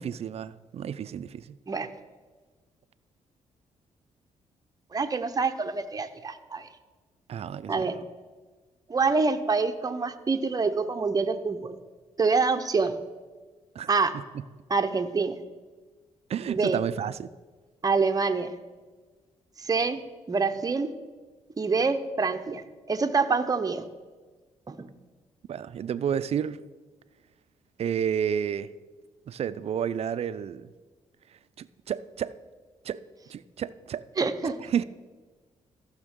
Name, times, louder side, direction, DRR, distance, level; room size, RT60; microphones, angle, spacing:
voice 1, 0.0-1.6 7.3-8.0 13.7-13.9 14.1-14.4 16.3-17.3 25.5-26.6 27.8-28.7 29.3-30.7 31.6-32.3 32.8-33.0 33.3-34.0 34.4-34.8, right 8 dB, 55° right, 0.4 m, -31 dB
voice 2, 4.9-6.7 7.7-8.0 8.9-11.7 12.2-13.0 13.9-14.2 14.7-15.4 16.5-16.8 17.8-18.5 19.6-20.0 20.3-20.9 21.6-23.9 24.7-24.9 34.2-34.6, right 4 dB, 30° right, 0.8 m, -26 dB
14.5 x 6.3 x 3.7 m
supercardioid pair, 65°, 13 cm